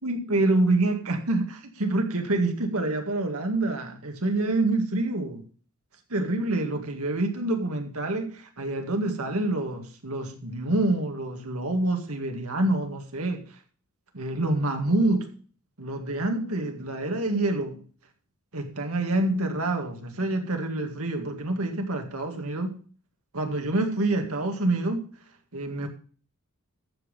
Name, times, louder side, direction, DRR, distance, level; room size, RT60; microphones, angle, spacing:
voice 1, 0.0-5.4 6.1-13.4 14.1-15.3 15.8-17.8 18.5-22.8 23.3-25.1 25.5-25.9, right 2 dB, 85° right, 2.0 m, -27 dB
14.0 x 5.4 x 5.4 m
head